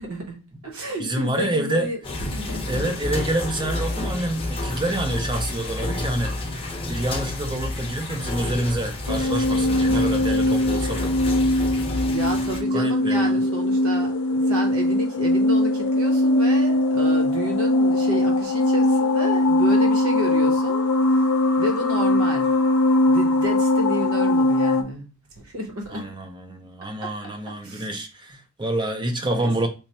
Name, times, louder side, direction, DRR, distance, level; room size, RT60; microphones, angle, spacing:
voice 1, 0.0-2.9 12.1-21.3 21.6-22.5 23.1-25.0 25.4-26.0 27.0-27.1 27.6-27.9 29.2-29.5, equal, 65° right, 1.0 m, -31 dB
voice 2, 1.0-1.9 2.7-6.4 6.9-11.1 12.7-13.4 25.9-29.7, right 1 dB, 20° right, 0.5 m, -27 dB
sound 1, 2.0-12.6, left 2 dB, 25° left, 0.6 m, -30 dB
sound 2, 9.1-24.8, left 1 dB, 80° left, 0.6 m, -20 dB
3.2 x 2.1 x 4.2 m
head